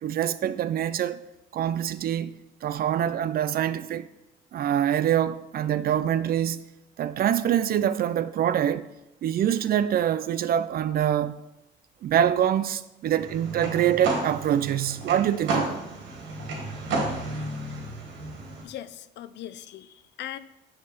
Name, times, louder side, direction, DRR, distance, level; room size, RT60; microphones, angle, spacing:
voice 1, 0.0-1.2 1.5-2.4 2.6-4.1 4.5-6.6 7.0-8.9 9.2-11.4 12.0-15.8, right 10 dB, 50° right, 0.4 m, -25 dB
sound 1, 13.2-18.6, right 2 dB, 80° right, 1.7 m, -32 dB
voice 2, 18.6-20.4, left 12 dB, 65° left, 0.4 m, -39 dB
6.5 x 3.4 x 5.9 m
cardioid pair, 100°, 19 cm